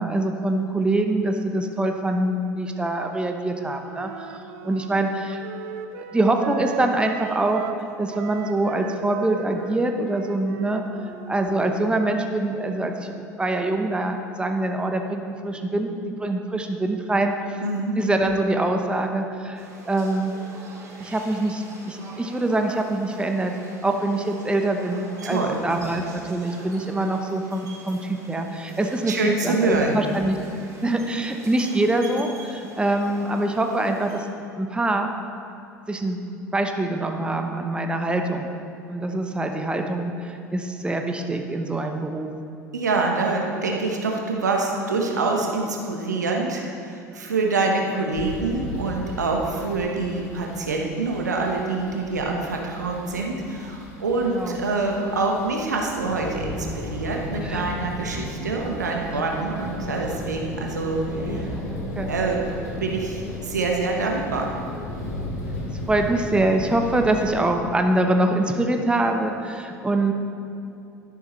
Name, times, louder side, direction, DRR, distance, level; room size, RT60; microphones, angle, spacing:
voice 1, 0.0-5.4 6.0-7.7 8.0-10.8 11.3-17.3 18.0-20.3 21.0-23.5 23.8-29.1 29.4-30.4 30.8-34.3 34.6-35.1 35.9-36.2 36.5-38.5 38.9-42.3 51.9-52.0 54.3-54.6 57.4-57.6 61.7-62.1 65.9-70.1, right 2 dB, 10° right, 4 dB, 0.9 m, -24 dB
Wind instrument woodwind instrument, 3.9-7.8 8.1-12.1, right 9 dB, 60° right, 0.5 m, -38 dB
voice 2, 17.6-18.0 25.2-25.6 29.1-30.0 42.7-61.5 62.1-64.5, right 3 dB, 80° right, 1 dB, 1.1 m, -25 dB
sound 1, 19.5-34.2, right 2 dB, 35° right, 2.6 m, -44 dB
sound 2, 48.1-67.5, left 1 dB, 65° left, 2.5 m, -35 dB
12.0 x 11.0 x 3.2 m, 2.7 s
figure-of-eight pair, 70°, 9 cm